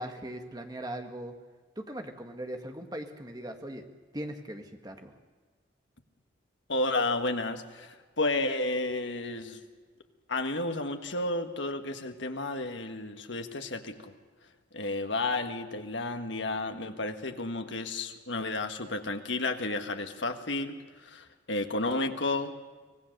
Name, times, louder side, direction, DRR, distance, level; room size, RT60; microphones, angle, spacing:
voice 1, 0.0-1.3 1.8-3.8 4.1-5.1, right 1 dB, 20° right, 5 dB, 1.7 m, -39 dB
voice 2, 6.7-9.6 10.3-14.1 14.7-22.5, left 2 dB, 75° left, 6 dB, 1.7 m, -32 dB
24.5 x 18.5 x 6.7 m, 1.4 s
head